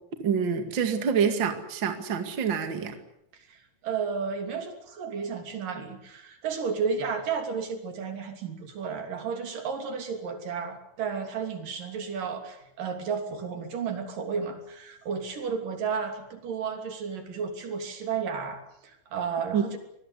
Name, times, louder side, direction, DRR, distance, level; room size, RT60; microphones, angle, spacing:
voice 1, 0.2-3.0 19.5-19.6, right 7 dB, 40° right, 7 dB, 2.5 m, -26 dB
voice 2, 3.3-19.8, right 6 dB, 75° right, 6 dB, 4.7 m, -33 dB
25.0 x 20.0 x 8.3 m, 0.77 s
omnidirectional pair, 3.9 m